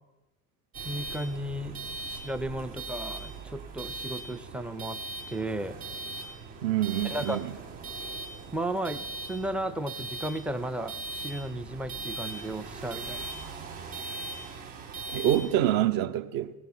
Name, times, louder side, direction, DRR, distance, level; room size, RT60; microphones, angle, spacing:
sound 1, 0.7-15.7, right 3 dB, 75° right, 2.6 m, -39 dB
voice 1, 0.8-1.8 2.1-5.0 5.3-5.8 7.0-7.4 8.5-13.5, right 1 dB, 5° right, 0.4 m, -34 dB
voice 2, 6.6-7.5 15.1-16.5, right 12 dB, 50° right, 0.7 m, -26 dB
18.0 x 7.9 x 4.3 m
figure-of-eight pair, 60°, 45 cm